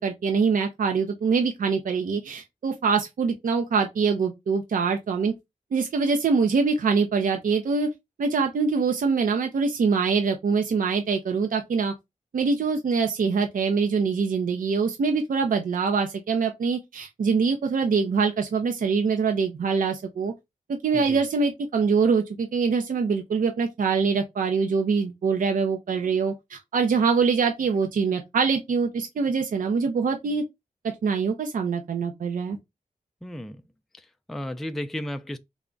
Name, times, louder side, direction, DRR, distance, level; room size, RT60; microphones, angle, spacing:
voice 1, 0.0-5.3 5.7-7.9 8.2-11.9 12.3-20.3 20.7-30.4 31.0-32.6, right 5 dB, 70° right, 0.5 m, -24 dB
voice 2, 33.2-33.6 34.0-35.4, left 1 dB, ahead, 0.3 m, -34 dB
3.4 x 2.1 x 3.7 m
wide cardioid pair, 85°, 14 cm